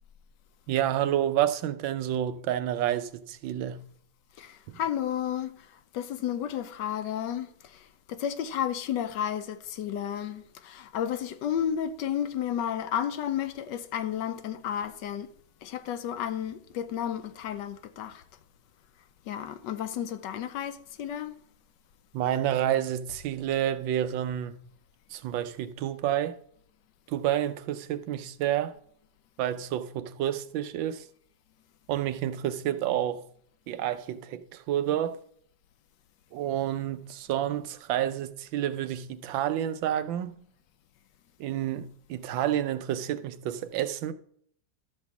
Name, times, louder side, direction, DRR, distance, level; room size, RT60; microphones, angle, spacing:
voice 1, 0.7-3.8 4.7-4.8 22.1-24.6 25.1-26.4 27.1-28.7 29.4-31.0 31.9-33.2 33.7-35.2 36.3-40.4 41.4-44.1, right 11 dB, 85° right, 1.4 m, -29 dB
voice 2, 4.4-15.3 15.6-18.2 19.3-21.4, left 9 dB, 75° left, 1.2 m, -32 dB
12.0 x 4.4 x 6.9 m
omnidirectional pair, 2.0 m